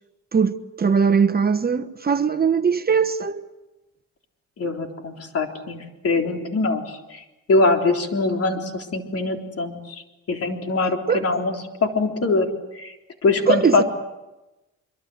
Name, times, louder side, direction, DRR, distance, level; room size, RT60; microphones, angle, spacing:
voice 1, 0.3-3.4 11.1-11.3 13.5-13.8, right 6 dB, 30° right, 1.1 m, -20 dB
voice 2, 4.6-10.0 10.3-11.6 11.8-12.5 12.7-12.9 13.2-13.8, left 3 dB, 50° left, 3.8 m, -23 dB
25.0 x 24.0 x 8.0 m
cardioid pair, 90°, 30 cm